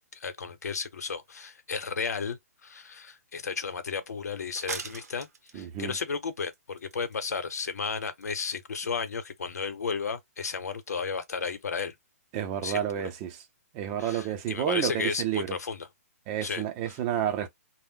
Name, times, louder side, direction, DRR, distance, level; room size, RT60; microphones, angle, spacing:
voice 1, 0.1-5.3 5.5-11.9 12.6-13.1 14.0-15.9 16.4-17.0, left 5 dB, 85° left, 0.8 m, -33 dB
sound 1, 3.1-3.2 3.6-3.7 4.6-6.0 6.5-7.6 7.8-7.9 8.2-8.5 8.7-8.8 9.1-9.2, right 5 dB, 85° right, 0.7 m, -40 dB
voice 2, 5.5-5.9 12.3-13.4 13.7-15.6 16.3-17.5, right 10 dB, 25° right, 0.6 m, -30 dB
2.5 x 2.1 x 3.7 m
hypercardioid pair, 150°, 8 cm